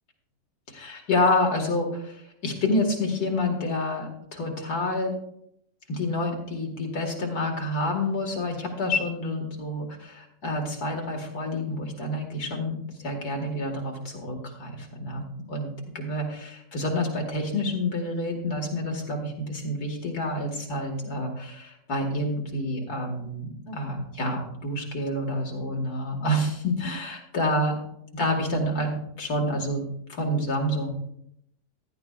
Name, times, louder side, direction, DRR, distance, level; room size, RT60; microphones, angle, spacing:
voice 1, 0.7-5.1 5.9-12.7 13.0-15.7 15.9-27.7 28.2-29.8 30.1-30.9, left 1 dB, 85° left, 1 dB, 2.4 m, -28 dB
15.0 x 11.5 x 2.4 m, 0.75 s
omnidirectional pair, 1.6 m